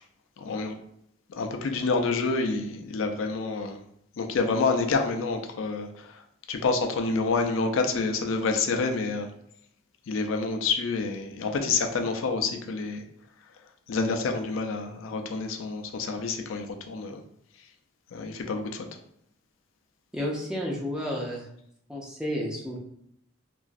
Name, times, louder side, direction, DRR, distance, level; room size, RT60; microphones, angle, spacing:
voice 1, 0.4-0.8 1.3-3.8 4.2-6.2 6.5-9.3 10.1-13.0 13.9-17.2 18.1-18.9, left 4 dB, 90° left, 5 dB, 0.4 m, -28 dB
voice 2, 20.1-21.5 21.9-22.8, equal, 5° right, -3 dB, 0.5 m, -31 dB
3.0 x 2.4 x 2.5 m, 0.72 s
head